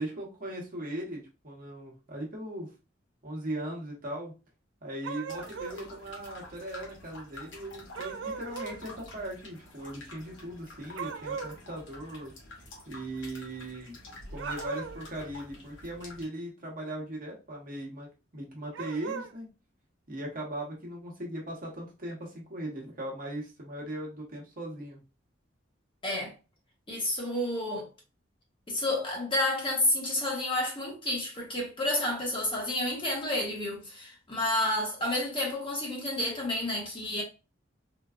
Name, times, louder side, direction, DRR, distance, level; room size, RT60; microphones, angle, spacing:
voice 1, 0.0-2.7 3.2-4.3 4.8-12.3 12.9-13.9 14.3-19.5 20.1-25.0, right 1 dB, 50° right, 1.1 m, -39 dB
sound 1, 5.0-5.8 7.9-8.8 11.0-11.6 14.3-15.1 18.7-19.3, right 6 dB, 75° right, 0.4 m, -38 dB
sound 2, 5.3-16.2, left 2 dB, 75° left, 1.1 m, -48 dB
voice 2, 26.9-27.9 28.7-37.2, left 1 dB, 30° left, 1.1 m, -30 dB
3.8 x 2.3 x 2.4 m
head